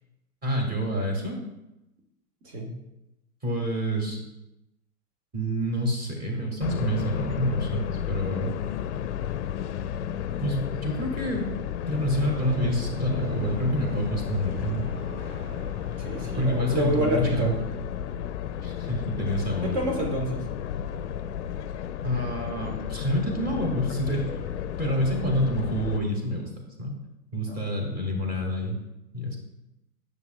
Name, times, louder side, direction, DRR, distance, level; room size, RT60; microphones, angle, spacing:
voice 1, 0.4-1.4 3.4-4.2 5.3-8.5 10.4-11.5 11.9-14.9 16.4-17.6 18.6-19.7 22.0-24.4 24.8-26.5 26.8-26.9 27.3-28.8 29.1-29.4, equal, 20° right, 1 dB, 2.0 m, -27 dB
sound 1, 6.6-26.0, left 9 dB, 50° left, 0.5 m, -33 dB
sound 2, 11.9-17.1, right 2 dB, 85° right, 1.4 m, -44 dB
voice 2, 16.0-17.5 19.6-20.5 27.4-27.6, right 1 dB, 45° right, 1 dB, 1.7 m, -28 dB
9.5 x 6.7 x 2.3 m, 0.93 s
figure-of-eight pair, 105°, 45 cm